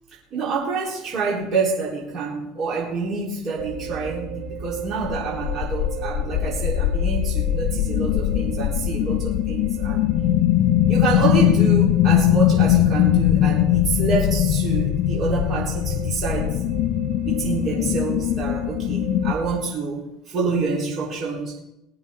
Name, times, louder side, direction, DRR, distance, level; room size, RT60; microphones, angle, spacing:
voice 1, 0.3-10.1 10.9-16.6 17.3-21.6, right 4 dB, 35° right, -4 dB, 3.7 m, -27 dB
sound 1, 3.6-19.5, right 4 dB, 90° right, 4.9 m, -35 dB
sound 2, 5.1-19.3, left 13 dB, 55° left, 0.5 m, -21 dB
20.0 x 13.0 x 3.7 m, 0.89 s
cardioid pair, 150°, 0 cm